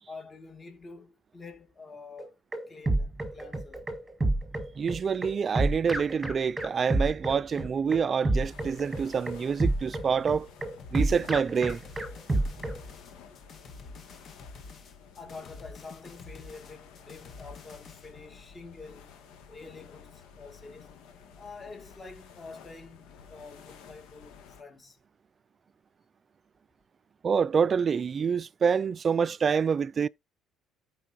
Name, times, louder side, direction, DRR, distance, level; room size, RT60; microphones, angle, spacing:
voice 1, 0.1-2.4 2.7-3.9 15.2-19.1 19.5-20.9 21.3-25.0, left 4 dB, 25° left, 2.0 m, -47 dB
sound 1, 2.2-12.8, right 2 dB, 15° right, 1.4 m, -29 dB
voice 2, 4.8-10.5 10.9-11.8 27.2-30.1, right 6 dB, 35° right, 0.3 m, -27 dB
sound 2, 8.3-24.6, left 7 dB, 80° left, 1.9 m, -52 dB
sound 3, 10.8-18.1, left 4 dB, 45° left, 1.3 m, -48 dB
14.0 x 4.7 x 2.7 m
cardioid pair, 120°, 0 cm